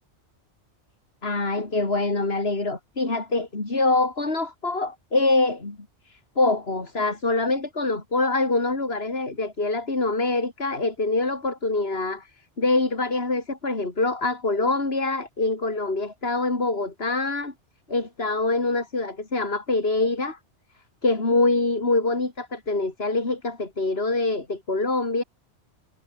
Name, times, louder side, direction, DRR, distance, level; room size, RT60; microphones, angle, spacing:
voice 1, 1.2-5.8 6.1-12.3 12.6-17.5 17.9-20.4 21.0-25.2, left 2 dB, 60° left, 3.9 m, -25 dB
omnidirectional pair, 1.2 m